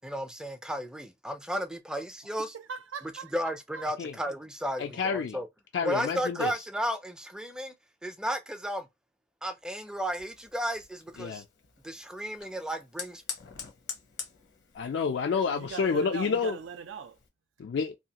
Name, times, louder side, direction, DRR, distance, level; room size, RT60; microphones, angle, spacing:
voice 1, 0.0-2.6 3.0-5.5 5.8-7.8 8.0-8.9 9.4-11.4 11.8-13.2, equal, 5° right, 0.4 m, -34 dB
voice 2, 2.4-3.3 3.7-3.8 15.5-17.2, right 6 dB, 90° right, 0.4 m, -40 dB
voice 3, 4.8-5.4 5.7-6.5 11.2-11.4 14.7-16.6 17.6-18.0, left 5 dB, 65° left, 0.3 m, -29 dB
Fire, 10.0-17.3, left 7 dB, 80° left, 0.9 m, -46 dB
2.6 x 2.3 x 2.8 m
head